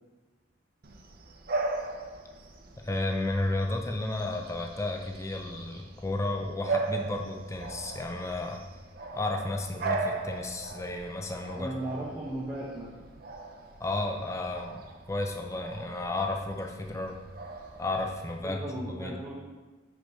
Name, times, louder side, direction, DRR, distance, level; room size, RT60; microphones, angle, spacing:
Bark / Bird vocalization bird call bird song, 0.8-18.4, right 3 dB, 50° right, 0.6 m, -38 dB
voice 1, 2.8-8.6 9.1-11.7 13.8-17.2 17.8-18.6 18.9-19.1, left 2 dB, 15° left, 2 dB, 0.5 m, -32 dB
voice 2, 11.6-12.9 18.4-19.3, right 1 dB, 15° right, -8 dB, 1.0 m, -36 dB
5.0 x 4.6 x 5.5 m, 1.2 s
head